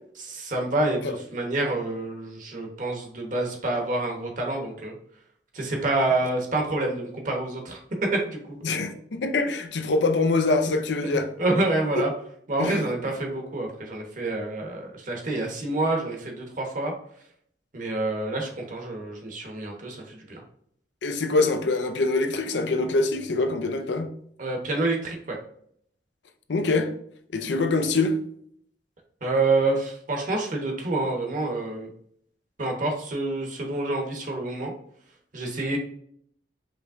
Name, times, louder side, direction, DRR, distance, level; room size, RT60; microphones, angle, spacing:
voice 1, 0.2-4.9 5.5-7.8 8.1-8.6 11.4-12.1 12.5-16.9 17.7-20.4 24.4-25.4 29.2-31.9 32.6-34.7 35.3-35.8, right 2 dB, 50° right, 1.0 m, -27 dB
voice 2, 8.6-11.3 12.0-12.1 12.6-12.8 21.0-24.1 26.5-26.9 27.3-28.2, left 3 dB, 85° left, 0.6 m, -24 dB
5.1 x 3.1 x 2.5 m
head